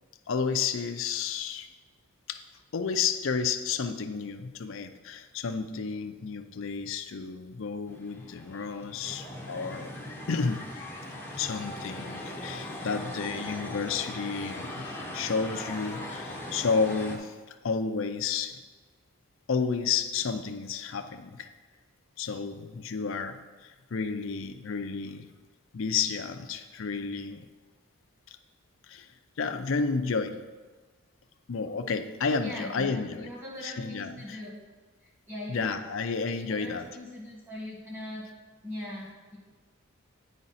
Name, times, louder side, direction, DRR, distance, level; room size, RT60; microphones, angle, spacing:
voice 1, 0.3-1.7 2.3-2.4 2.7-9.9 10.3-10.6 11.3-14.9 15.1-17.4 17.6-18.6 19.5-21.5 22.2-25.3 25.7-27.4 28.9-29.1 29.4-30.4 31.5-33.3 33.6-34.4 35.5-36.9, left 5 dB, 60° left, 7 dB, 0.5 m, -31 dB
sound 1, 7.9-17.2, left 1 dB, 10° left, 0.8 m, -39 dB
voice 2, 32.4-34.5 35.0-35.7 36.5-38.2 38.6-39.4, left 1 dB, 10° right, -5 dB, 1.7 m, -41 dB
8.7 x 5.1 x 4.0 m, 1.4 s
head